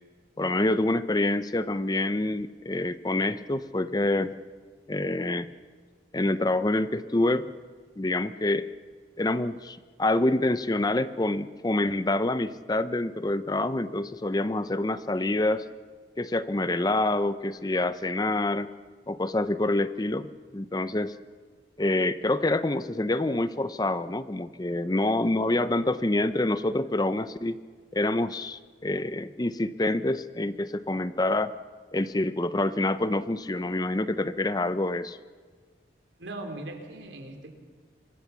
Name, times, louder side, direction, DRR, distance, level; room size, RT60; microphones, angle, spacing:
voice 1, 0.4-4.3 4.9-5.5 6.1-7.5 8.0-8.7 9.2-15.6 16.2-18.7 19.1-21.1 21.8-27.6 27.9-31.5 31.9-35.2, left 2 dB, 20° left, 13 dB, 0.6 m, -27 dB
voice 2, 36.2-37.5, right 2 dB, 80° right, 4 dB, 3.6 m, -39 dB
25.5 x 20.5 x 7.1 m, 1.5 s
head